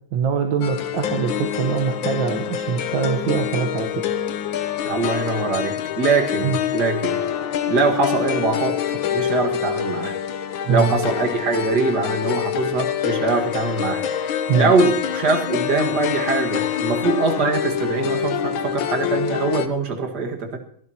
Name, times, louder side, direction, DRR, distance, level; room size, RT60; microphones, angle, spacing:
voice 1, 0.1-4.0 6.4-6.6 10.7-10.9 14.5-14.7, right 7 dB, 75° right, 4 dB, 1.8 m, -23 dB
sound 1, 0.6-19.7, left 9 dB, 80° left, 1.7 m, -26 dB
voice 2, 4.8-7.2 7.7-8.8 9.1-10.2 10.7-20.6, right 3 dB, 55° right, 3 dB, 2.4 m, -23 dB
23.5 x 12.0 x 2.9 m, 0.63 s
omnidirectional pair, 2.1 m